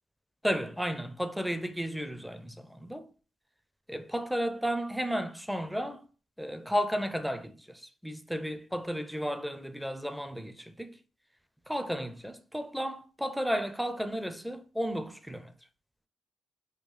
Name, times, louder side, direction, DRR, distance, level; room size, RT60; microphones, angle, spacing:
voice 1, 0.4-3.1 3.9-6.0 6.4-11.0 11.7-15.5, equal, ahead, 0.4 m, -33 dB
3.6 x 2.3 x 3.1 m
cardioid pair, 90°, 0 cm